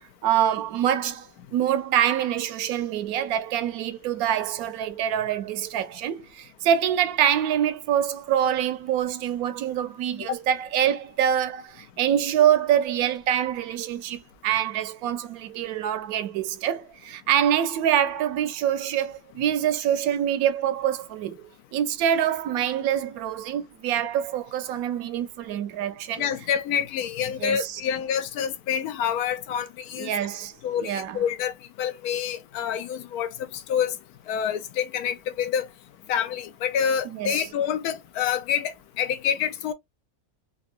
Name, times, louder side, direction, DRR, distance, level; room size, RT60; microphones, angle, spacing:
voice 1, 0.2-26.3 27.4-27.8 30.0-30.5 30.8-31.2 37.1-37.4, right 10 dB, 80° right, 1.1 m, -25 dB
voice 2, 26.2-30.1 30.6-34.0 34.3-35.7 36.1-39.7, left 8 dB, 90° left, 1.1 m, -27 dB
3.6 x 2.3 x 2.4 m
omnidirectional pair, 1.5 m